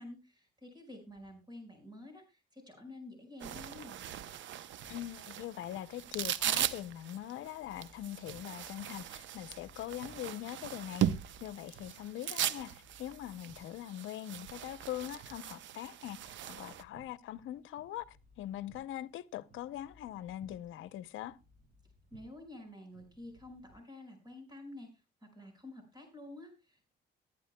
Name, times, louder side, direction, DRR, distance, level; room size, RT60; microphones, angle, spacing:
voice 1, 0.0-4.0 22.1-26.9, left 1 dB, 20° right, 5.0 m, -50 dB
sound 1, 3.4-16.8, right 10 dB, 70° right, 0.7 m, -39 dB
sound 2, 4.7-23.8, right 1 dB, 40° right, 7.7 m, -62 dB
voice 2, 4.9-11.0 11.4-21.4, left 13 dB, 80° left, 0.7 m, -42 dB
22.0 x 9.7 x 2.2 m
cardioid pair, 90°, 20 cm